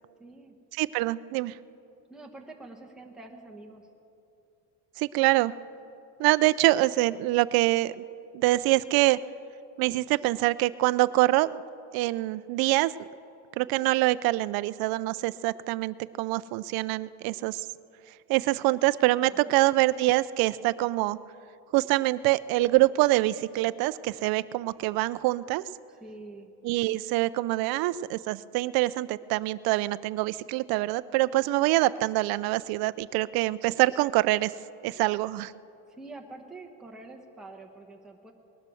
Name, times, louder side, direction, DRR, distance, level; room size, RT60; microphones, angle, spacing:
voice 1, 0.2-0.5 2.1-3.9 19.5-19.6 26.0-26.5 35.9-38.3, right 2 dB, ahead, 0 dB, 1.1 m, -46 dB
voice 2, 0.8-1.6 5.0-5.5 6.2-8.0 8.3-9.2 9.8-11.6 11.9-12.9 13.6-17.7 18.3-21.2 21.7-25.6 26.6-34.5 34.8-35.5, right 18 dB, 60° right, 15 dB, 0.5 m, -25 dB
19.5 x 12.0 x 6.2 m, 2.7 s
cardioid pair, 140°, 41 cm